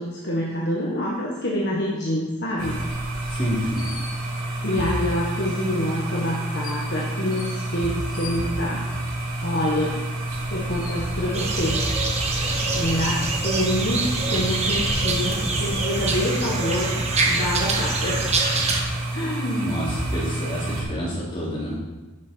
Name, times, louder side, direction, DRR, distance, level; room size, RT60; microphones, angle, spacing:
voice 1, 0.0-2.8 4.6-8.9 9.4-9.9 10.5-11.8 12.7-18.3 19.1-19.8, left 1 dB, 50° left, -4 dB, 1.6 m, -26 dB
sound 1, 2.6-18.5, left 1 dB, 80° left, 2.5 m, -42 dB
sound 2, 2.6-20.8, right 1 dB, 85° right, 2.8 m, -29 dB
voice 2, 3.3-3.8 19.6-21.8, equal, 25° left, -7 dB, 3.6 m, -28 dB
sound 3, 11.3-18.8, right 3 dB, 30° right, 1.2 m, -25 dB
11.5 x 7.0 x 4.6 m, 1.2 s
head